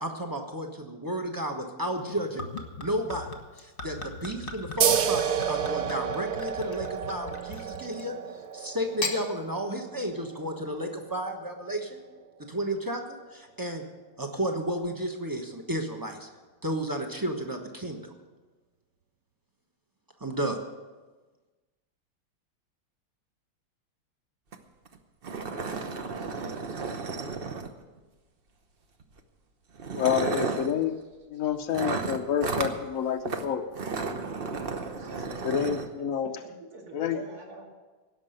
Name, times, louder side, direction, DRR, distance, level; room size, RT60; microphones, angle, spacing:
voice 1, 0.0-2.5 2.8-3.3 3.5-8.1 8.5-12.0 12.5-13.8 14.2-16.3 16.6-18.1 20.2-20.6, right 1 dB, 20° right, 3 dB, 0.6 m, -32 dB
Gurgling / Chink clink / Liquid, 2.0-8.1 8.8-9.2, left 3 dB, 30° left, 1.1 m, -38 dB
sound 1, 4.8-11.9, right 9 dB, 60° right, 1.0 m, -31 dB
sound 2, 24.5-24.6 24.9-25.0 25.2-28.0 29.0-29.2 29.8-30.7 31.7-32.8 33.2-33.4 33.7-35.9, right 4 dB, 75° right, 0.5 m, -33 dB
voice 2, 29.9-31.0 31.3-33.6 34.0-34.2 35.4-36.3 36.9-37.2, left 8 dB, 85° left, 5 dB, 0.7 m, -28 dB
voice 3, 34.8-37.8, right 2 dB, 45° right, 0 dB, 2.7 m, -48 dB
17.0 x 6.1 x 8.9 m, 1.3 s
omnidirectional pair, 2.4 m